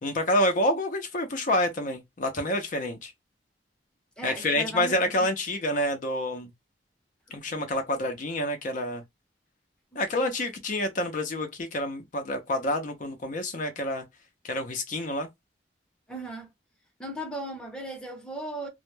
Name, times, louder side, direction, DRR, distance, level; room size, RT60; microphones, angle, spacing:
voice 1, 0.0-3.1 4.2-6.5 7.3-9.0 10.0-14.0 14.4-15.3, left 1 dB, 45° left, 0.5 m, -28 dB
voice 2, 4.2-5.3 7.3-7.4 9.9-10.0 16.1-16.5 17.0-18.7, right 1 dB, 5° left, 0.6 m, -37 dB
2.1 x 2.1 x 3.0 m
head